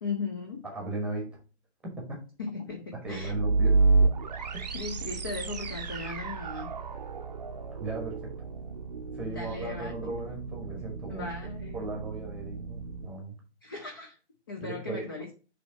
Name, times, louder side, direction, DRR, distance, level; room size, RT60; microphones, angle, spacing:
voice 1, 0.0-0.7 2.4-3.3 4.7-6.7 9.2-9.9 11.1-11.9 13.6-14.2 14.5-15.3, left 4 dB, 20° left, 2 dB, 0.5 m, -37 dB
voice 2, 0.6-1.3 1.8-2.2 2.9-3.8 4.5-4.7 7.8-8.3 9.1-11.3 11.7-13.4 14.6-15.1, right 2 dB, 5° right, -1 dB, 1.2 m, -37 dB
sound 1, 3.1-13.1, right 3 dB, 40° right, 0.6 m, -30 dB
6.7 x 3.3 x 5.2 m, 0.36 s
figure-of-eight pair, 135°, 34 cm